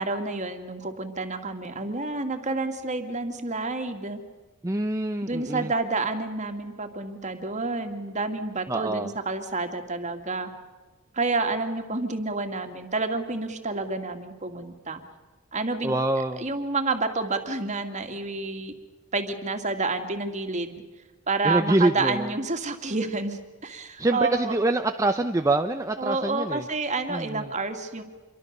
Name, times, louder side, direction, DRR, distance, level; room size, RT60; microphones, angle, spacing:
voice 1, 0.0-4.2 5.2-10.5 11.1-15.0 15.5-15.9 16.4-18.7 19.1-20.8 21.3-24.6 26.0-28.0, right 3 dB, 35° right, 6 dB, 2.4 m, -29 dB
voice 2, 4.6-5.7 8.7-9.1 15.8-16.5 21.4-22.3 24.0-26.6 27.1-27.5, right 2 dB, 15° right, 6 dB, 0.7 m, -25 dB
27.5 x 23.5 x 6.7 m, 1.3 s
head